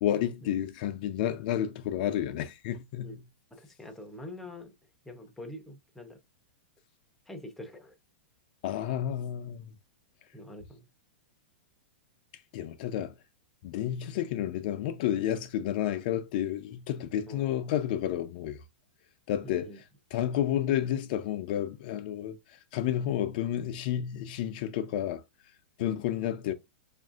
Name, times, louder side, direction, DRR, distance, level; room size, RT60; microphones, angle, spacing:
voice 1, 0.0-3.2 8.6-9.7 12.5-13.1 13.6-18.6 19.3-19.7 20.1-25.2 25.8-26.5, left 11 dB, 50° left, 0.4 m, -31 dB
voice 2, 3.5-4.7 5.0-6.2 7.3-7.9 10.3-10.9 17.3-17.7 19.4-19.8 25.8-26.0, left 1 dB, 5° left, 0.6 m, -45 dB
5.1 x 2.5 x 2.4 m
hypercardioid pair, 140°, 6 cm